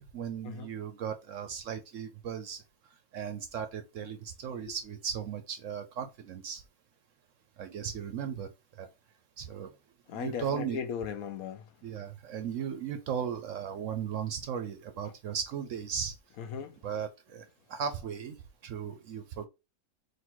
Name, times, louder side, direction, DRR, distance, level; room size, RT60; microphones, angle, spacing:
voice 1, 0.0-2.6 3.1-6.6 7.6-8.5 8.8-8.9 9.4-9.7 10.1-10.8 11.8-16.1 16.8-17.4 17.7-18.4 18.6-19.5, right 7 dB, 65° right, 0.8 m, -36 dB
voice 2, 10.1-11.7 15.0-15.1 16.4-16.8, left 7 dB, 70° left, 1.0 m, -37 dB
3.9 x 2.6 x 4.5 m
omnidirectional pair, 1.7 m